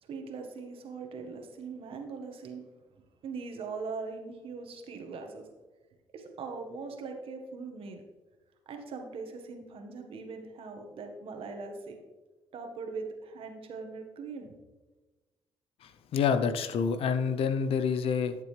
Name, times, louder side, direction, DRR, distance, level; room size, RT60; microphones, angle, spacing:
voice 1, 0.0-2.6 3.2-5.5 6.1-8.0 8.6-12.0 12.5-14.5, right 4 dB, 65° right, 4 dB, 1.5 m, -41 dB
voice 2, 15.8-18.4, left 6 dB, 70° left, 11 dB, 0.7 m, -28 dB
12.0 x 6.7 x 3.3 m, 1.2 s
supercardioid pair, 70°, 10 cm